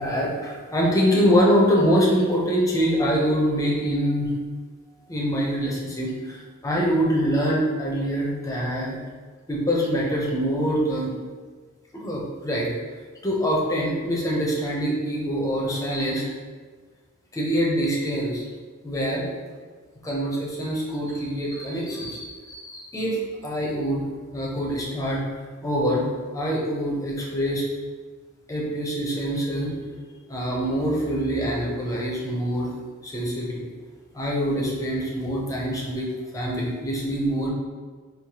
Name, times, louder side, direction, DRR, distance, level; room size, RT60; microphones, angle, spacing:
voice 1, 0.0-4.3 5.1-9.0 9.5-11.1 11.9-12.7 13.2-16.3 17.3-18.4 18.8-19.3 20.0-24.0 24.3-25.2 25.6-26.0 26.3-27.6 28.5-29.8 30.3-32.8 33.0-33.7 34.1-37.5, equal, 15° left, -4 dB, 0.7 m, -24 dB
4.7 x 2.1 x 2.9 m, 1.5 s
head